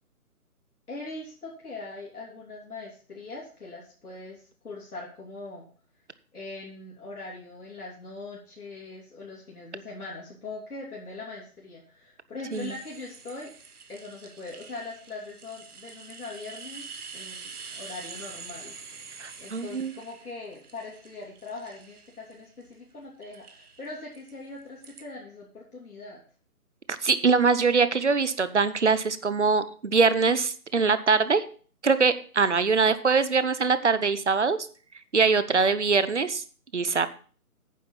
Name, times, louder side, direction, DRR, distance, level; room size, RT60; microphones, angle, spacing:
voice 1, 0.9-5.6 6.3-13.5 13.9-16.9 17.1-18.7 19.4-26.2, left 3 dB, 70° left, -4 dB, 3.4 m, -41 dB
sound 1, 12.5-22.7 23.2-25.0, right 5 dB, 75° right, 1.5 m, -46 dB
voice 2, 19.2-19.9 26.9-31.4 31.8-34.6 35.1-36.4 36.7-37.1, right 4 dB, 50° right, 14 dB, 0.8 m, -23 dB
9.3 x 6.4 x 5.5 m, 0.42 s
hypercardioid pair, 180°, 45 cm